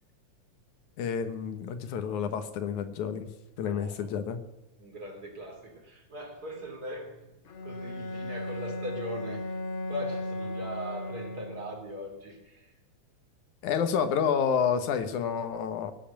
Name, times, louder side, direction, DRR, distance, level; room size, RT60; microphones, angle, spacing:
voice 1, 1.0-3.3 3.6-4.4 13.6-15.9, left 7 dB, 90° left, 9 dB, 2.7 m, -29 dB
voice 2, 3.7-4.1 4.8-7.3 7.6-9.6 9.9-12.7, equal, 30° right, 2 dB, 3.6 m, -40 dB
Bowed string instrument, 7.5-11.9, left 1 dB, 70° left, 3.1 m, -36 dB
17.5 x 7.8 x 8.9 m, 1.0 s
omnidirectional pair, 3.3 m